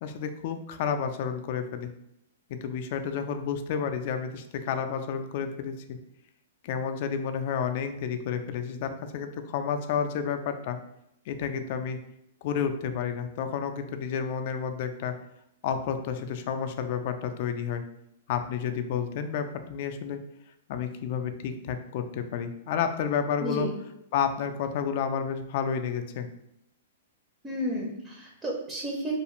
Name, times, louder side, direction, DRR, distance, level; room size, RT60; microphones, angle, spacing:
voice 1, 0.0-1.9 2.5-6.0 6.6-10.8 11.3-12.0 12.4-15.1 15.6-17.8 18.3-20.2 20.7-23.7 24.1-26.3, left 7 dB, 50° left, 7 dB, 0.3 m, -30 dB
voice 2, 23.4-23.7 27.4-29.2, equal, 10° right, -2 dB, 0.5 m, -32 dB
2.4 x 2.3 x 3.0 m, 0.80 s
hypercardioid pair, 140°, 0 cm